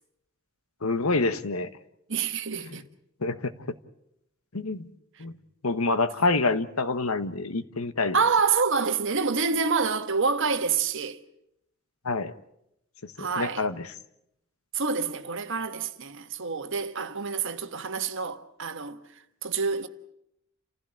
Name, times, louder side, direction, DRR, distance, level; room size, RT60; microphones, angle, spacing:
voice 1, 0.8-1.7 2.6-2.8 3.2-3.5 4.5-4.9 5.2-5.3 5.6-8.2 12.0-12.4 13.2-13.9, left 3 dB, 85° left, 1.3 m, -27 dB
voice 2, 2.1-2.8 8.1-11.2 13.2-13.6 14.7-19.0 19.4-19.9, right 5 dB, 60° right, 1.5 m, -27 dB
29.5 x 15.5 x 8.7 m
head